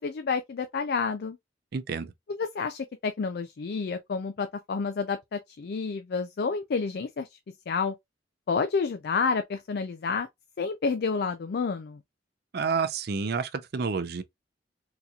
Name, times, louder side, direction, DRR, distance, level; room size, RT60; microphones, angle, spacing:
voice 1, 0.0-1.4 2.3-7.4 7.7-7.9 8.5-10.3 10.6-12.0, left 5 dB, 55° left, 0.4 m, -29 dB
voice 2, 1.7-2.1 12.5-14.2, right 5 dB, 60° right, 0.5 m, -29 dB
3.9 x 2.9 x 2.3 m
head